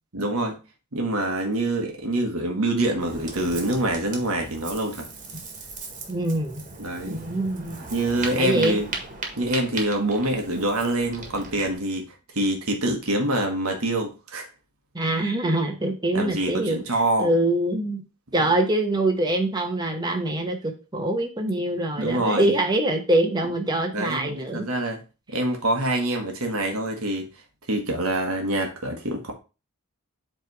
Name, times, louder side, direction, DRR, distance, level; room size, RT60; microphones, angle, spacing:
voice 1, 0.1-0.6 0.9-5.1 6.8-7.2 7.9-8.9 9.4-12.0 12.3-14.5 16.1-17.3 22.0-22.5 23.9-25.0 25.3-27.3 27.7-29.3, right 1 dB, 85° right, 3 dB, 1.4 m, -25 dB
Ocean, 3.0-11.8, right 3 dB, 40° right, 1.7 m, -38 dB
voice 2, 6.1-6.6 7.1-7.8 8.4-8.8 14.9-16.8 17.2-18.0 18.3-24.7, right 1 dB, 20° right, 3 dB, 1.1 m, -24 dB
8.1 x 3.5 x 4.7 m, 0.31 s
head